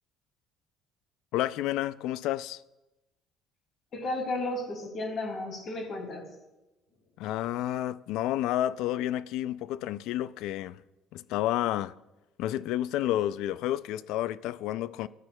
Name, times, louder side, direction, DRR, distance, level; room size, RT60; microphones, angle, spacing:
voice 1, 1.3-2.6 7.2-10.8 11.1-11.9 12.4-15.1, left 13 dB, 75° left, 0.3 m, -30 dB
voice 2, 3.9-6.3, left 2 dB, 40° left, 2.5 m, -33 dB
16.0 x 9.6 x 2.3 m
cardioid pair, 140°, 0 cm